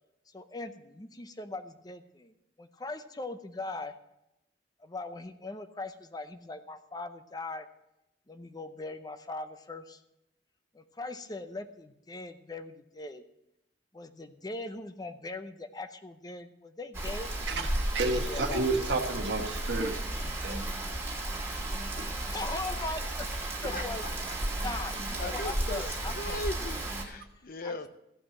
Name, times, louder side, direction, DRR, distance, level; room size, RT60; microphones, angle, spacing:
voice 1, 0.3-3.9 4.8-7.7 8.3-10.0 10.7-13.2 13.9-17.3 18.1-18.7 22.0-23.3 23.6-24.0 24.6-26.4 27.6-27.9, left 2 dB, 25° left, 9 dB, 0.7 m, -40 dB
Rain, 16.9-27.0, right 1 dB, 15° right, 2.6 m, -34 dB
voice 2, 17.5-20.7 22.0-22.1 23.8-23.9, right 3 dB, 85° right, 4 dB, 1.4 m, -32 dB
voice 3, 23.7-24.1 24.7-27.9, left 2 dB, 55° left, 11 dB, 0.8 m, -39 dB
15.0 x 5.8 x 7.3 m, 0.87 s
head